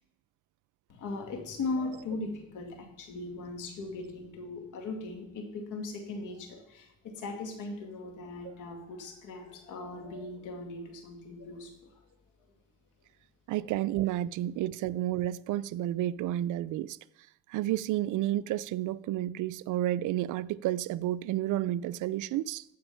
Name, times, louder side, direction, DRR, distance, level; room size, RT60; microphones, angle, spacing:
voice 1, 0.9-12.0 13.5-13.6, left 3 dB, 85° left, 2.2 m, -39 dB
voice 2, 13.5-17.0 17.5-22.6, right 14 dB, 80° right, 0.5 m, -31 dB
14.0 x 5.3 x 5.6 m
cardioid pair, 90°, 30 cm